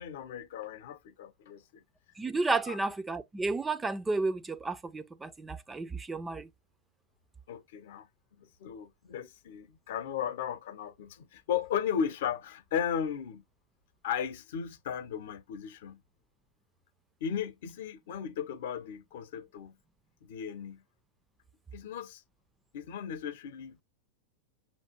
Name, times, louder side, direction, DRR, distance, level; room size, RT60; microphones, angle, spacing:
voice 1, 0.0-1.8 2.7-2.8 7.5-8.1 8.4-13.4 14.0-16.0 17.2-19.8 20.2-20.8 21.7-22.2 22.7-23.8, left 8 dB, 60° left, 0.8 m, -36 dB
voice 2, 2.2-6.5, right 3 dB, 15° right, 0.4 m, -32 dB
5.8 x 2.5 x 2.9 m
figure-of-eight pair, 95°, 0 cm